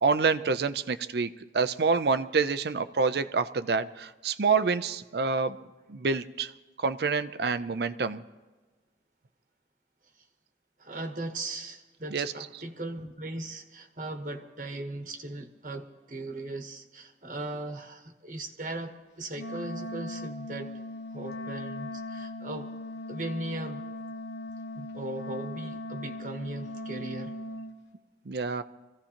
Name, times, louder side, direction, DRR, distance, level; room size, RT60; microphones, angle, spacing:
voice 1, 0.0-5.6 5.9-6.5 6.8-8.2 12.1-12.3 28.3-28.6, right 4 dB, 65° right, 11 dB, 0.5 m, -27 dB
voice 2, 10.8-20.7 21.1-22.7 23.1-23.8 24.7-27.3, right 2 dB, 45° right, 3 dB, 1.1 m, -38 dB
Wind instrument woodwind instrument, 19.3-27.8, left 1 dB, 85° left, 1.1 m, -39 dB
25.0 x 15.5 x 2.9 m, 1.3 s
head